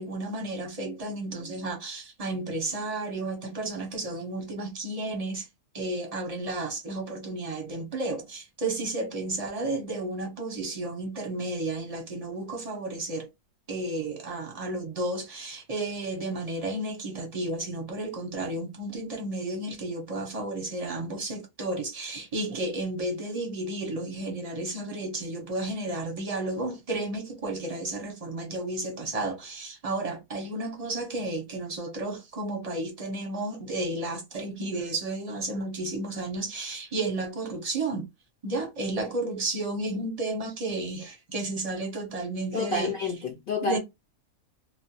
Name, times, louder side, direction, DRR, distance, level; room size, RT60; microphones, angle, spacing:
voice 1, 0.0-5.5 5.7-13.3 13.7-38.0 38.4-42.9 43.6-43.8, right 2 dB, 35° right, 0.7 m, -32 dB
voice 2, 42.5-43.8, left 3 dB, 45° left, 0.8 m, -29 dB
2.4 x 2.2 x 2.7 m
omnidirectional pair, 1.5 m